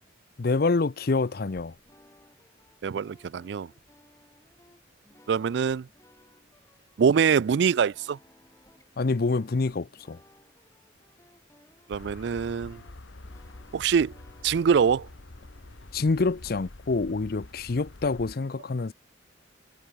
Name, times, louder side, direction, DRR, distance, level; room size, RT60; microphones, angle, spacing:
voice 1, 0.4-1.7 9.0-10.2 15.9-18.9, left 3 dB, 50° left, 0.6 m, -26 dB
sound 1, 1.2-16.7, left 1 dB, 15° left, 6.2 m, -60 dB
voice 2, 2.8-3.7 5.3-5.9 7.0-8.2 11.9-12.8 13.7-14.1 14.4-15.1, right 6 dB, 60° right, 0.3 m, -24 dB
sound 2, 11.9-18.4, left 2 dB, 75° left, 1.4 m, -46 dB
head